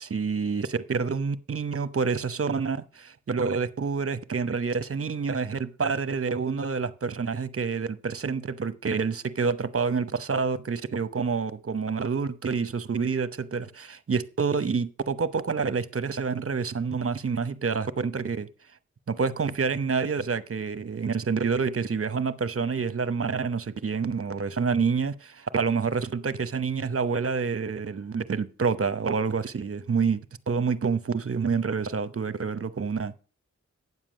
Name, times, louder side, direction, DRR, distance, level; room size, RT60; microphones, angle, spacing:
voice 1, 0.0-18.5 19.1-30.2 30.5-33.1, right 5 dB, 50° right, 0.9 m, -28 dB
9.6 x 7.4 x 6.3 m
cardioid pair, 50°, 29 cm